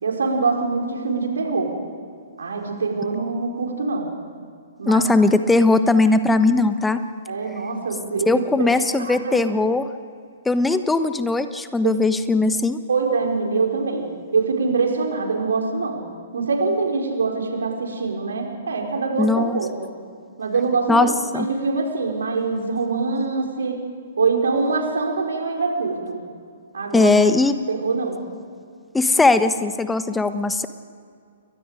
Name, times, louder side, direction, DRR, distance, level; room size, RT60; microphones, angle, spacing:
voice 1, 0.0-1.7 2.4-4.1 4.8-5.0 7.2-8.3 8.6-9.4 11.8-11.9 12.9-14.1 14.3-16.0 16.3-19.7 20.4-23.8 24.2-26.2 26.7-27.1 27.7-28.2, right 4 dB, 65° right, 1 dB, 4.7 m, -24 dB
voice 2, 4.8-7.0 8.3-9.9 10.4-12.8 19.2-19.6 20.9-21.5 26.9-27.6 28.9-30.7, left 3 dB, 5° left, 11 dB, 1.1 m, -19 dB
29.5 x 22.5 x 5.0 m, 2.2 s
figure-of-eight pair, 120°, 0 cm